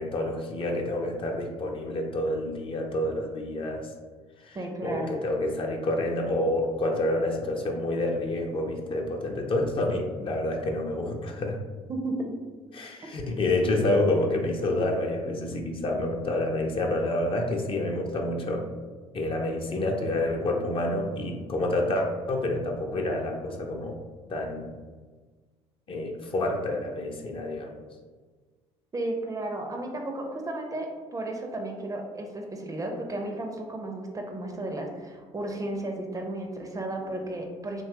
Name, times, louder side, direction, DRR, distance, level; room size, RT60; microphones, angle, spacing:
voice 1, 0.0-3.9 4.4-4.6 4.8-11.6 12.7-18.7 19.1-24.0 24.3-24.6 25.9-27.7, left 1 dB, 40° left, 2 dB, 0.5 m, -28 dB
voice 2, 4.5-5.1 11.9-12.3 28.9-37.8, right 1 dB, 25° right, 3 dB, 0.5 m, -33 dB
2.8 x 2.2 x 2.8 m, 1.4 s
hypercardioid pair, 60°, 14 cm